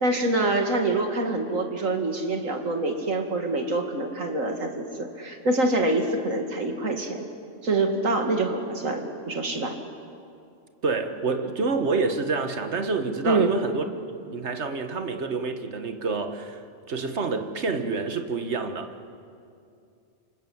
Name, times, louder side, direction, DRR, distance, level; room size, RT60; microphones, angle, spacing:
voice 1, 0.0-7.2 7.6-9.7 13.2-13.6, right 2 dB, 80° right, 2.7 m, -25 dB
voice 2, 10.8-13.9 14.2-16.6 16.9-19.1, right 4 dB, 60° right, 1.7 m, -28 dB
27.5 x 26.0 x 8.0 m
omnidirectional pair, 1.3 m